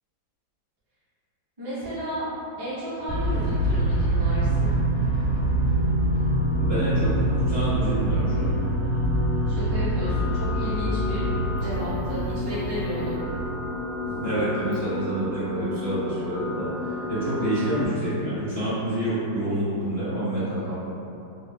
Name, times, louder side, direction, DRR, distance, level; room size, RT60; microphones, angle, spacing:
voice 1, 1.6-2.2 2.6-4.7 9.4-11.3 11.6-13.2, equal, 20° right, -14 dB, 0.6 m, -33 dB
sound 1, 3.1-13.4, right 1 dB, 55° right, 1.8 m, -25 dB
sound 2, 3.9-17.9, left 3 dB, 75° right, 1.2 m, -34 dB
voice 2, 6.6-8.5 14.0-20.7, right 1 dB, 40° right, -14 dB, 1.1 m, -28 dB
4.2 x 2.2 x 2.3 m, 2.7 s
omnidirectional pair, 2.0 m